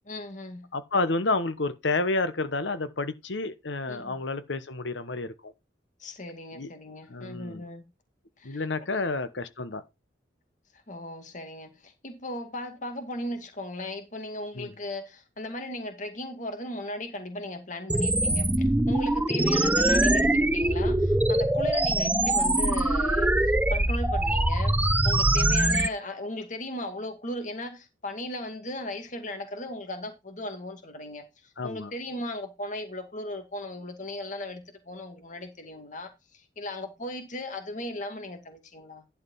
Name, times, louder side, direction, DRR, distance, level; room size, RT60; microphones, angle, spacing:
voice 1, 0.1-0.7 3.9-4.2 6.0-7.8 8.4-8.6 10.7-24.8 25.0-39.0, left 1 dB, 45° left, 2.2 m, -37 dB
voice 2, 0.7-5.5 6.5-6.7 7.1-7.6 8.4-9.8 14.6-14.7 31.6-31.9, left 3 dB, 80° left, 1.1 m, -30 dB
sound 1, 17.9-25.9, right 1 dB, 10° right, 0.6 m, -23 dB
11.5 x 4.9 x 5.6 m
head